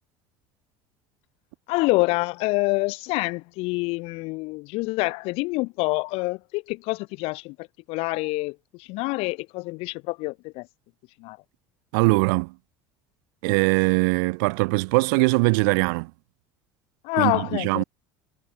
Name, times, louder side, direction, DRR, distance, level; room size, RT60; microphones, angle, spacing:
voice 1, 1.7-7.5 7.9-10.7 11.2-11.4 17.0-17.8, left 24 dB, 65° left, 0.8 m, -26 dB
voice 2, 11.9-12.5 13.4-16.1 17.1-17.8, right 29 dB, 85° right, 1.2 m, -21 dB
supercardioid pair, 125°, 11 cm